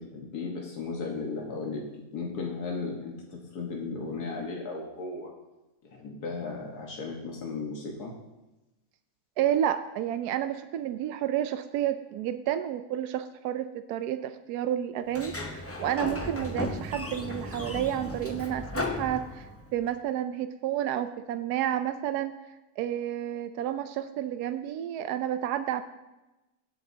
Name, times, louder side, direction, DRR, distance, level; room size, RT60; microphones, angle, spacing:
voice 1, 0.0-1.9 2.1-5.3 5.8-8.1, left 4 dB, 80° left, -1 dB, 1.9 m, -35 dB
voice 2, 9.4-19.5 19.7-22.3 22.8-25.8, right 11 dB, 85° right, 10 dB, 1.1 m, -30 dB
Sliding door, 15.1-19.8, left 2 dB, 15° left, 0.5 m, -35 dB
23.0 x 7.8 x 2.8 m, 1.0 s
omnidirectional pair, 1.6 m